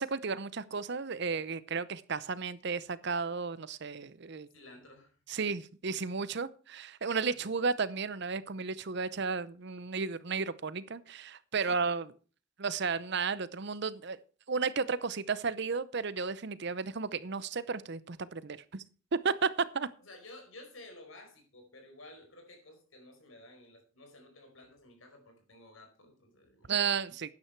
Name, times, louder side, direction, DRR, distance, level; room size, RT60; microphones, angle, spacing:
voice 1, 0.0-4.5 5.3-12.0 12.6-14.2 14.5-18.8 19.1-19.9 26.7-27.3, right 5 dB, 55° right, 16 dB, 0.7 m, -33 dB
voice 2, 4.5-5.2 7.3-7.5 11.5-11.9 12.6-13.0 20.0-26.7, left 2 dB, 70° left, 5 dB, 4.7 m, -54 dB
12.5 x 9.8 x 4.6 m, 0.38 s
head